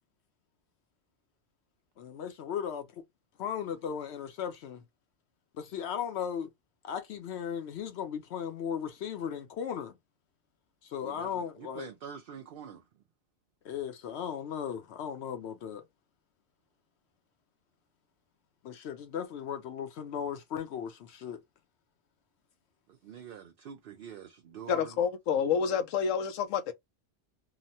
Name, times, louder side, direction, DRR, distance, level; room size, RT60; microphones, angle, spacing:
voice 1, 2.0-3.0 3.4-4.8 5.5-6.5 6.8-10.0 10.8-11.9 13.6-15.9 18.6-21.4, left 8 dB, 65° left, 0.8 m, -36 dB
voice 2, 11.7-12.8 23.0-24.9, right 8 dB, 60° right, 0.6 m, -45 dB
voice 3, 24.7-26.7, left 7 dB, 90° left, 1.0 m, -28 dB
2.9 x 2.1 x 2.6 m
omnidirectional pair, 1.3 m